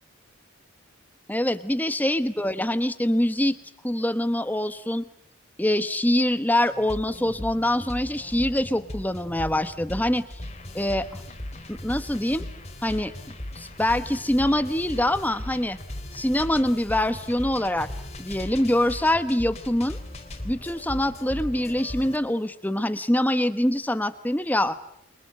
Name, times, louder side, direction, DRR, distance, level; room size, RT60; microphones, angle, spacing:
voice 1, 1.3-3.6 3.8-5.1 5.6-10.2 10.7-11.1 11.7-12.5 12.8-13.1 13.6-15.8 16.1-17.9 18.2-20.0 20.4-24.7, left 1 dB, 10° left, 12 dB, 1.1 m, -24 dB
sound 1, 6.7-22.2, left 1 dB, 30° left, 3.1 m, -38 dB
28.5 x 23.5 x 8.9 m, 0.74 s
head